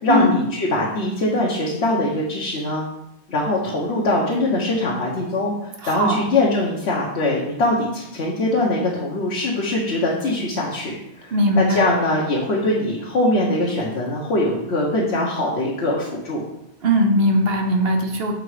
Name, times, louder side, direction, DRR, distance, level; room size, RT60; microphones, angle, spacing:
voice 1, 0.0-2.8 3.3-16.4, left 1 dB, 70° left, -3 dB, 1.3 m, -22 dB
voice 2, 5.8-6.3 11.3-11.9 16.8-18.3, equal, 65° right, 3 dB, 1.1 m, -19 dB
6.5 x 3.8 x 4.9 m, 0.85 s
omnidirectional pair, 1.1 m